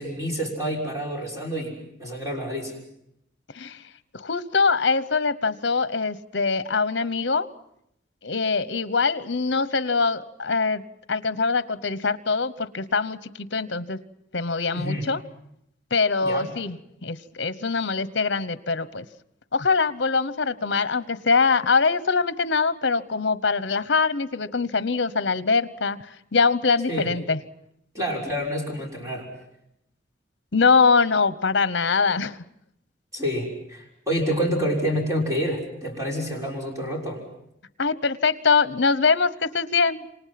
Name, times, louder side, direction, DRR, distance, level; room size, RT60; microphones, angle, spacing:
voice 1, 0.0-2.7 14.7-15.1 16.2-16.5 26.9-27.1 27.9-29.3 33.1-37.2, equal, 15° right, 0 dB, 6.3 m, -28 dB
voice 2, 4.1-7.5 8.2-10.8 11.1-14.0 14.3-15.2 15.9-19.1 19.5-27.4 30.5-32.4 37.8-40.0, left 4 dB, 65° left, 15 dB, 1.0 m, -23 dB
28.0 x 25.5 x 5.9 m, 0.78 s
head